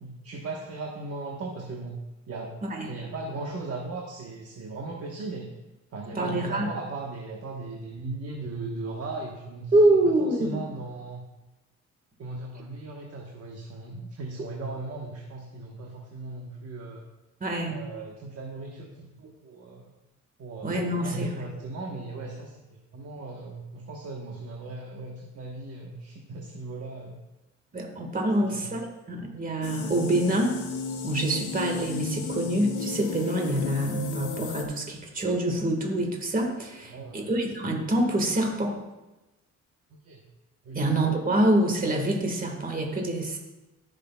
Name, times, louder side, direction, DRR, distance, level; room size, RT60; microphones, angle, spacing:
voice 1, 0.0-2.0 2.3-2.5 2.9-5.5 5.9-11.2 12.2-17.0 17.7-19.9 20.4-22.7 22.9-27.2 28.4-28.7 36.9-37.3 39.9-40.2 40.6-40.8, right 3 dB, 50° right, -1 dB, 1.2 m, -37 dB
voice 2, 6.2-6.7 9.7-10.6 17.4-17.8 20.6-21.3 27.7-30.6 31.0-38.8 40.7-43.4, right 1 dB, 30° right, 2 dB, 1.7 m, -26 dB
sound 1, 29.6-34.6, left 5 dB, 85° left, 1.2 m, -35 dB
14.0 x 6.5 x 2.3 m, 1.0 s
cardioid pair, 90°, 30 cm